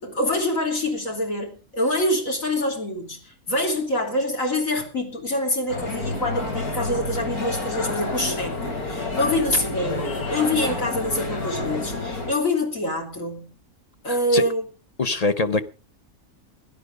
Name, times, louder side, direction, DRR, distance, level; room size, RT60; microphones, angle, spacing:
voice 1, 0.0-13.5 14.0-14.6, left 1 dB, 65° left, 3.8 m, -25 dB
sound 1, 5.7-12.3, left 2 dB, 85° left, 4.0 m, -29 dB
voice 2, 14.1-14.4 15.0-15.6, left 3 dB, 35° left, 0.8 m, -23 dB
16.5 x 11.0 x 5.2 m
omnidirectional pair, 1.5 m